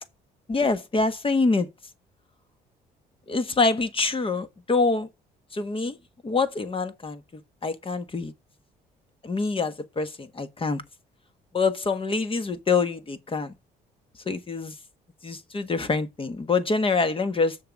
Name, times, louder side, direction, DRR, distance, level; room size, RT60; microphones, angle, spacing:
voice 1, 0.5-1.7 3.3-5.1 5.5-6.0 6.2-8.3 9.2-10.8 11.5-13.5 14.2-14.8 15.2-17.6, left 4 dB, 30° left, 1.5 m, -25 dB
6.7 x 6.7 x 4.7 m
cardioid pair, 85°, 17 cm